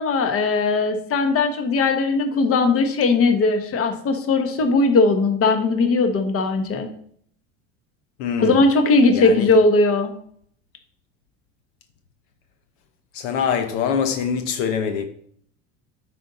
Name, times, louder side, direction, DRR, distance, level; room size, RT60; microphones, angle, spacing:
voice 1, 0.0-6.9 8.4-10.1, left 3 dB, 35° left, 1.2 m, -19 dB
voice 2, 8.2-8.7 9.1-9.6 13.1-15.0, left 7 dB, 75° left, 0.9 m, -24 dB
9.3 x 4.2 x 4.0 m
supercardioid pair, 115°, 38 cm